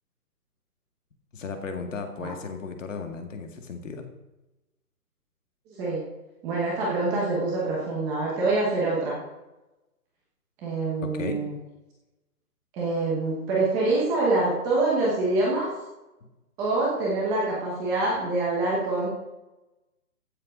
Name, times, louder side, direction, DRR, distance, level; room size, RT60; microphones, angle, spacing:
voice 1, 1.3-4.1 11.0-11.4, left 4 dB, 55° left, 5 dB, 2.1 m, -35 dB
voice 2, 6.4-9.2 10.6-11.6 12.7-15.7 16.6-19.1, right 2 dB, 5° right, -5 dB, 1.0 m, -25 dB
15.0 x 7.4 x 5.1 m, 1.0 s
hypercardioid pair, 165°, 46 cm